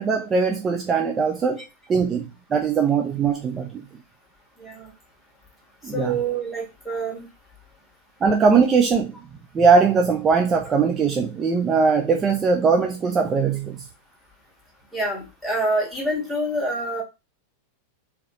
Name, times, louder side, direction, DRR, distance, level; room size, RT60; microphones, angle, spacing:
voice 1, 0.0-1.6 1.9-3.8 5.8-6.2 8.2-9.2 9.5-13.9, right 5 dB, 20° right, 0.5 m, -20 dB
voice 2, 4.6-4.9 5.9-7.2 14.9-17.0, right 2 dB, ahead, 1.9 m, -26 dB
4.0 x 2.8 x 3.7 m
figure-of-eight pair, 90°, 0 cm